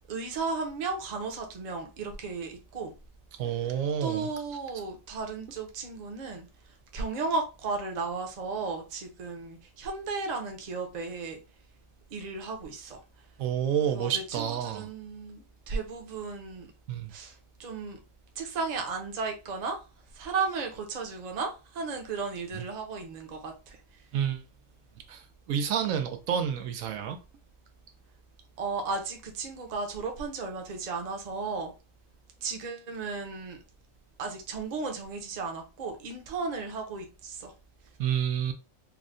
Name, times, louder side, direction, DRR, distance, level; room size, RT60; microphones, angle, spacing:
voice 1, 0.1-2.9 3.5-11.4 12.1-13.0 13.8-16.7 17.1-18.0 18.4-19.9 20.1-24.1 28.6-31.7 32.4-33.6 34.2-37.5, right 4 dB, 45° right, 0.6 m, -35 dB
voice 2, 3.4-4.3 13.4-14.9 16.9-17.1 22.5-22.6 24.1-24.4 25.1-25.2 25.5-27.2 38.0-38.5, right 8 dB, 90° right, 1.0 m, -29 dB
4.5 x 2.1 x 2.5 m
omnidirectional pair, 1.4 m